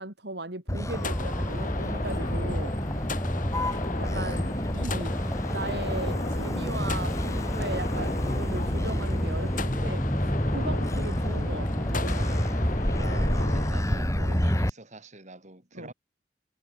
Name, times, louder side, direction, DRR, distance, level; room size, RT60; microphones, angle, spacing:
voice 1, 0.0-2.7 3.9-5.1 5.5-10.1 10.5-12.4 14.2-14.4 15.7-15.9, right 2 dB, 65° right, 5.6 m, -37 dB
Motor vehicle (road), 0.7-14.7, equal, 15° left, 2.5 m, -28 dB
sound 1, 0.9-13.7, left 2 dB, 45° left, 4.3 m, -36 dB
voice 2, 12.9-15.9, right 2 dB, 40° right, 5.0 m, -45 dB
head